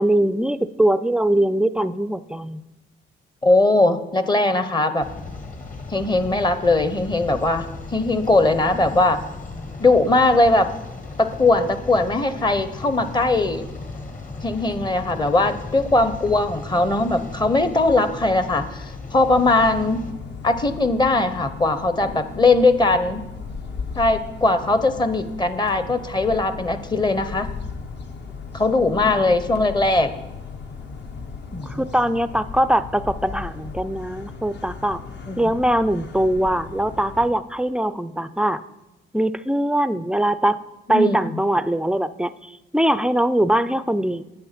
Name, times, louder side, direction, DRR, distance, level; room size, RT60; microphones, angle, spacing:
voice 1, 0.0-2.6 29.0-29.3 31.6-35.0 35.4-38.6 39.1-40.6 40.9-44.2, right 1 dB, 5° right, 14 dB, 0.3 m, -22 dB
voice 2, 3.4-5.1 5.9-9.2 9.8-10.7 11.2-13.6 14.4-20.0 20.4-23.2 23.9-27.5 28.5-30.1 31.5-31.8 35.3-35.5 40.9-41.4, left 2 dB, 20° left, 11 dB, 0.7 m, -20 dB
sound 1, 5.0-20.1, left 3 dB, 40° left, 1.5 m, -36 dB
sound 2, 19.2-37.3, left 5 dB, 60° left, 1.1 m, -36 dB
9.6 x 7.0 x 5.8 m, 1.0 s
cardioid pair, 90°, 20 cm